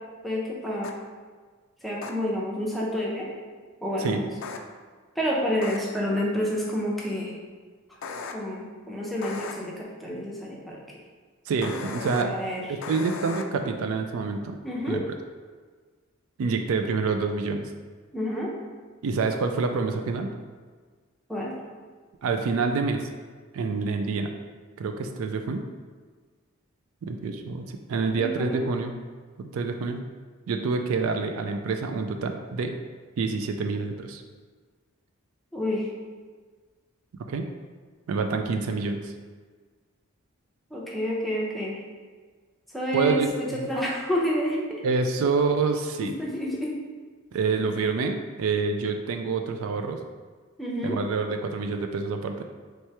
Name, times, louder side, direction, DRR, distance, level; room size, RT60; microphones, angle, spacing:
voice 1, 0.2-0.9 1.8-3.3 3.8-4.3 5.2-7.4 8.3-10.8 12.2-12.7 14.6-15.0 18.1-18.5 21.3-21.6 28.2-28.6 35.5-35.9 40.7-41.8 42.7-44.8 46.0-46.8 50.6-51.0, equal, ahead, -4 dB, 0.6 m, -29 dB
sound 1, 0.8-0.9 2.0-2.1 4.4-4.6 5.6-5.8 8.0-8.3 9.2-9.5 11.6-12.2 12.8-13.4, left 4 dB, 60° left, 0.3 m, -36 dB
voice 2, 11.5-12.3 12.7-14.6 14.9-15.0 16.4-17.6 19.0-20.3 22.2-23.1 23.5-24.3 24.8-25.6 27.0-28.9 29.4-30.0 30.5-32.7 33.2-34.2 37.3-37.4 38.1-39.1 42.9-43.3 44.8-46.1 47.3-50.0 50.8-52.5, right 4 dB, 75° right, 5 dB, 0.3 m, -27 dB
3.2 x 3.0 x 4.6 m, 1.5 s
head